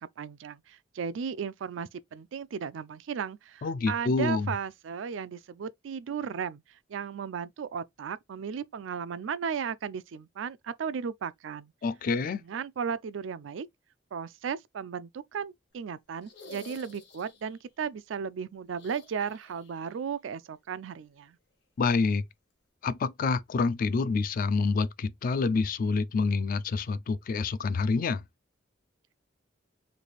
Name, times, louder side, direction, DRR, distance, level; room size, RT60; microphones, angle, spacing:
voice 1, 0.0-11.7 12.3-13.7 14.1-21.4, right 6 dB, 90° right, 0.4 m, -35 dB
voice 2, 3.6-4.5 11.8-12.4 21.8-22.2 22.8-28.2, left 4 dB, 50° left, 0.3 m, -27 dB
sound 1, 16.2-17.6 18.7-19.9 20.2-20.3 21.9-22.0, left 3 dB, 65° left, 1.0 m, -51 dB
3.3 x 2.5 x 3.9 m
head